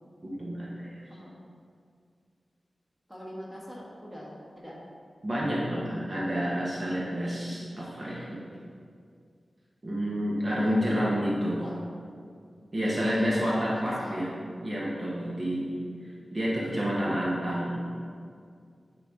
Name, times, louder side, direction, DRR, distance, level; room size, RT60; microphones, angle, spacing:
voice 1, 0.2-1.0 5.2-8.4 9.8-11.6 12.7-14.3 14.6-15.7 16.3-17.8, equal, 35° right, -6 dB, 1.1 m, -29 dB
voice 2, 3.1-4.7 10.6-11.2 11.5-11.7 12.8-13.4 13.7-14.3 17.2-17.6, equal, 5° right, -6 dB, 1.5 m, -41 dB
9.8 x 3.9 x 3.7 m, 2.2 s
wide cardioid pair, 120°, 0 cm